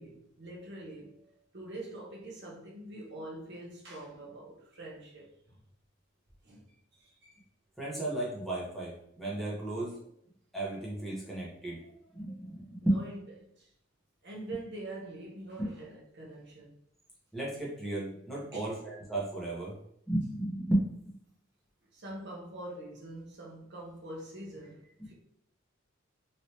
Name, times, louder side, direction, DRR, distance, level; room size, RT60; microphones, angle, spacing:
voice 1, 0.0-5.6 6.4-6.7 6.9-7.4 12.8-13.2 13.5-13.7 14.2-16.7 18.5-18.7 21.9-25.1, right 1 dB, 55° right, 0.9 m, -44 dB
voice 2, 7.8-10.0 10.5-13.0 15.6-15.7 17.3-19.8 20.1-20.9 25.0-25.1, right 1 dB, ahead, 0.9 m, -33 dB
3.1 x 2.9 x 2.8 m
head